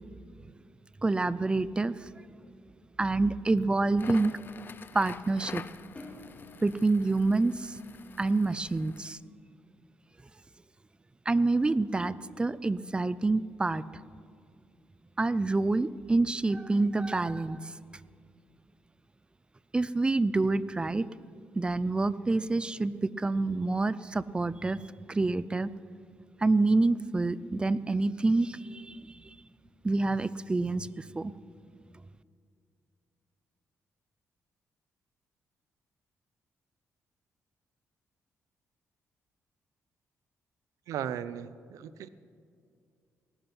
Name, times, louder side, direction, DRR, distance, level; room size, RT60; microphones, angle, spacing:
voice 1, 1.0-2.1 3.0-4.4 4.9-5.6 6.6-7.8 8.2-9.2 11.3-13.8 15.2-17.7 19.7-21.1 21.6-24.8 25.1-25.7 26.4-29.0 29.8-31.3, right 3 dB, 20° right, 18 dB, 0.4 m, -27 dB
Crackle, 3.9-9.1, left 6 dB, 40° left, 0.5 m, -46 dB
sound 1, 6.0-8.5, left 2 dB, 25° left, 3.3 m, -50 dB
voice 2, 40.9-42.1, right 9 dB, 90° right, 15 dB, 0.6 m, -36 dB
19.0 x 11.5 x 6.0 m, 2.3 s
cardioid pair, 105°, 5 cm